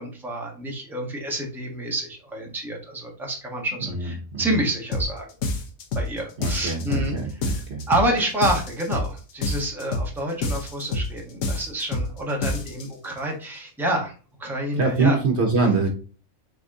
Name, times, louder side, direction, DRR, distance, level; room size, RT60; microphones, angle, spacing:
voice 1, 0.0-5.3 5.9-7.4 7.9-14.1 14.4-15.2, right 1 dB, ahead, -1 dB, 1.1 m, -28 dB
sound 1, 4.9-5.1 5.4-6.1 6.4-7.1 7.4-8.1 8.4-9.1 9.4-10.1 10.4-11.1 11.4-12.1 12.4-12.9, left 2 dB, 85° left, 1.3 m, -27 dB
voice 2, 6.4-7.8 14.8-15.9, right 3 dB, 55° right, 3 dB, 1.1 m, -23 dB
4.0 x 3.6 x 3.6 m, 0.37 s
omnidirectional pair, 1.4 m